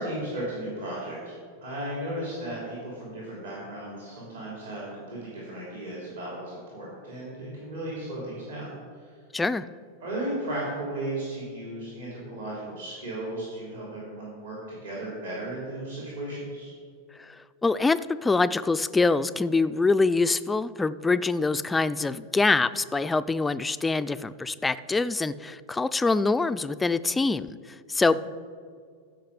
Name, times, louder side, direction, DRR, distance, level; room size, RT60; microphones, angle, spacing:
voice 1, 0.0-1.3 1.6-8.6 10.0-16.7 28.1-28.2, right 1 dB, 65° right, -5 dB, 3.0 m, -35 dB
voice 2, 9.3-9.7 17.6-27.6 27.9-28.2, left 3 dB, 10° left, 14 dB, 0.3 m, -24 dB
15.5 x 5.8 x 4.9 m, 2.1 s
figure-of-eight pair, 90°, 0 cm